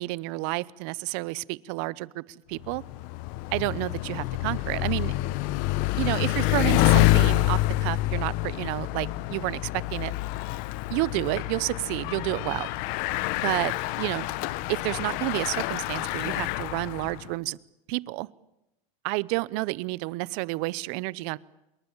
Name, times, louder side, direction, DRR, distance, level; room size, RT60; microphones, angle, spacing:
voice 1, 0.0-2.8 3.5-5.1 6.0-10.1 10.9-12.7 13.4-14.3 14.7-17.6 17.9-18.3 19.0-21.4, right 22 dB, 55° right, 21 dB, 0.9 m, -30 dB
Bicycle, 2.6-17.3, left 17 dB, 55° left, 1.0 m, -27 dB
26.5 x 22.0 x 7.3 m, 0.91 s
supercardioid pair, 125°, 17 cm